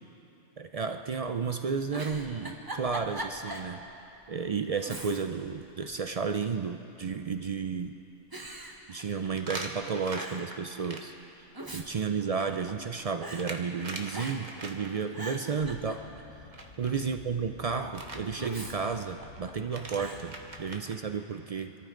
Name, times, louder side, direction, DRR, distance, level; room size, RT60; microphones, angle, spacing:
voice 1, 0.6-3.9 4.3-8.0 8.9-11.1 11.7-16.1 16.8-21.7, right 5 dB, 60° right, 7 dB, 0.3 m, -32 dB
Giggle, 1.9-3.7 4.1-4.2 4.8-5.5 5.8-6.6 7.4-7.8 8.3-9.5 9.8-9.9 10.2-10.5 11.3-12.9 13.2-13.5 14.1-14.6 15.0-16.3 18.4-19.5 20.0-20.3, right 1 dB, 20° right, 1.2 m, -41 dB
sound 1, 4.4-4.7 5.0-5.1 5.6-5.7 5.9-6.1 9.3-11.0 12.2-15.0 16.5-17.1 17.9-18.2 19.4-19.5 19.6-21.0, right 2 dB, 40° right, 1.2 m, -42 dB
sound 2, 15.7-20.7, left 4 dB, 70° left, 1.4 m, -51 dB
26.0 x 14.0 x 3.8 m, 2.8 s
omnidirectional pair, 1.3 m